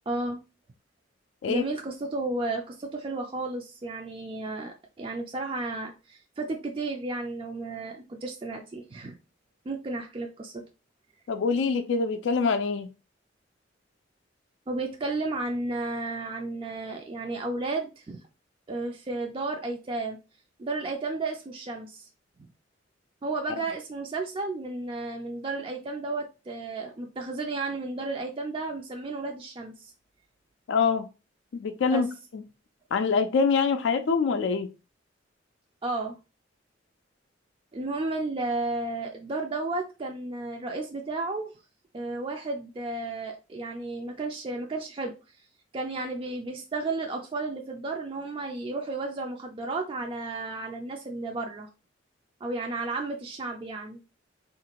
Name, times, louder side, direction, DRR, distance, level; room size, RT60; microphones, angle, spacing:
voice 1, 0.1-0.4 1.5-9.1 9.7-10.6 14.7-18.2 18.7-20.2 20.6-22.1 23.2-29.9 31.9-32.0 35.8-36.2 37.7-41.5 41.9-45.1 45.7-51.7 52.4-54.0, right 2 dB, 30° right, 0.4 m, -33 dB
voice 2, 11.3-12.9 30.7-31.1 31.5-32.1 32.3-32.4 32.9-34.7, left 5 dB, 70° left, 0.4 m, -25 dB
3.6 x 2.4 x 2.8 m
head